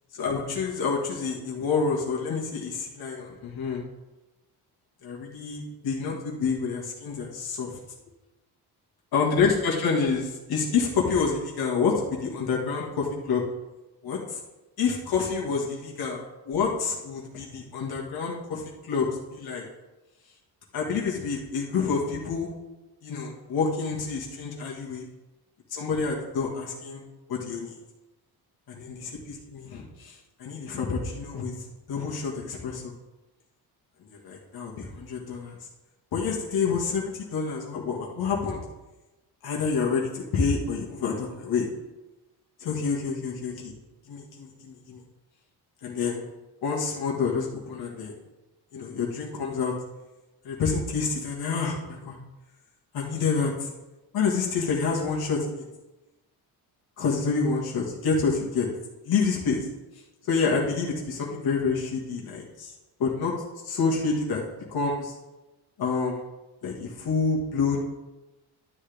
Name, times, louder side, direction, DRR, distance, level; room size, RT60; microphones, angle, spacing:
voice 1, 0.1-3.8 5.0-7.8 9.1-13.4 14.0-14.4 14.8-19.6 20.7-22.5 23.0-25.1 25.7-27.0 27.3-27.8 28.7-31.5 31.9-32.9 34.1-35.6 36.1-38.6 39.4-41.7 42.6-43.7 44.1-45.0 45.8-46.2 46.6-48.2 48.7-49.7 50.4-52.2 52.9-53.7 54.1-55.6 57.0-58.7 59.0-59.7 60.2-62.7 63.0-63.3 63.6-64.4 64.7-65.1 65.8-66.2 66.6-67.8, left 5 dB, 65° left, -3 dB, 2.0 m, -28 dB
12.0 x 8.4 x 3.5 m, 1.1 s
cardioid pair, 150°, 40 cm